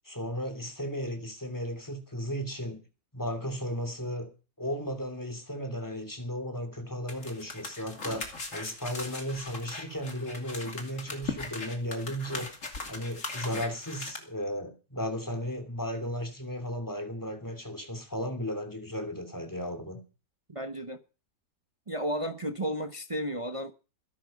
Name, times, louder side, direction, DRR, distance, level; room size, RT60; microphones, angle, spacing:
voice 1, 0.0-2.8 3.1-4.3 4.6-12.5 12.9-20.0, equal, 10° left, 2.7 m, -35 dB
sound 1, 7.1-14.2, left 3 dB, 55° left, 3.0 m, -39 dB
voice 2, 20.5-21.0 21.9-23.7, equal, 25° right, 0.9 m, -33 dB
20.5 x 11.0 x 5.3 m
omnidirectional pair, 1.6 m